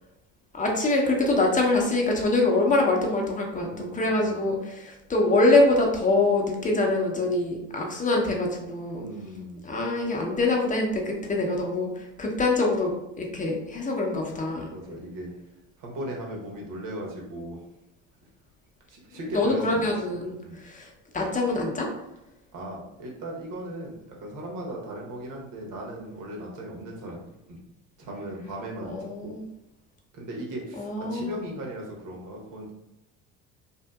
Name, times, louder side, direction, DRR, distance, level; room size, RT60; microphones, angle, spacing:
voice 1, 0.5-9.0 9.6-14.7 19.3-20.3 20.6-20.9 21.1-21.9 28.9-29.4 30.8-31.4, left 2 dB, 20° left, 0 dB, 0.7 m, -24 dB
voice 2, 3.6-4.5 8.9-9.7 14.7-15.3 15.8-17.6 18.9-19.9 20.4-20.6 22.5-27.6 28.0-29.3 30.1-32.7, right 1 dB, 55° right, -1 dB, 1.1 m, -37 dB
2.7 x 2.5 x 2.3 m, 0.87 s
hypercardioid pair, 75°, 37 cm